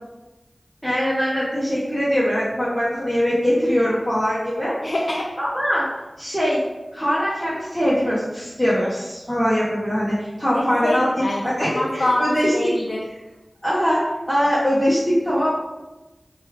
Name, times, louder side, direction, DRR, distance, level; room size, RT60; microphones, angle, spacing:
voice 1, 0.8-4.9 5.4-5.9 6.2-6.6 6.9-11.1 11.4-12.5 13.6-15.5, equal, 5° left, -10 dB, 0.8 m, -22 dB
voice 2, 4.8-5.3 10.5-13.0, left 1 dB, 65° left, -2 dB, 0.4 m, -25 dB
3.0 x 2.3 x 3.1 m, 1.1 s
wide cardioid pair, 50°, 0 cm